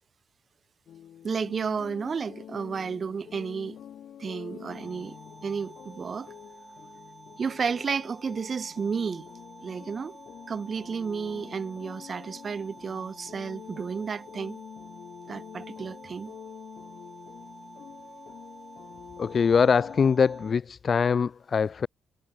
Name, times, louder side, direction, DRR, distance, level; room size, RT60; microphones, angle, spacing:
sound 1, 0.9-20.6, left 9 dB, 65° left, 6.5 m, -47 dB
voice 1, 1.2-3.8 4.2-5.2 5.4-6.3 7.4-9.3 9.6-10.2 10.5-14.6 15.3-16.3, right 6 dB, 40° right, 1.0 m, -32 dB
sound 2, 4.7-20.5, right 2 dB, 20° right, 7.5 m, -50 dB
voice 2, 19.2-21.9, left 6 dB, 45° left, 0.8 m, -23 dB
cardioid pair, 90°, 0 cm